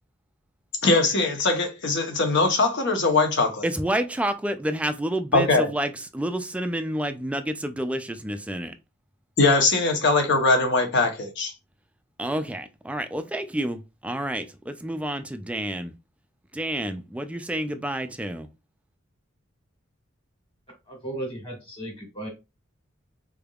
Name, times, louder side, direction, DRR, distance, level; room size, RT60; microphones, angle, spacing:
voice 1, 0.8-3.7 5.3-5.7 9.4-11.5, left 3 dB, 60° left, 0.8 m, -21 dB
voice 2, 3.6-8.7 12.2-15.9 16.5-18.5, right 1 dB, 5° right, 0.3 m, -29 dB
voice 3, 20.9-22.3, right 1 dB, 25° left, 1.7 m, -35 dB
3.7 x 3.4 x 2.3 m
head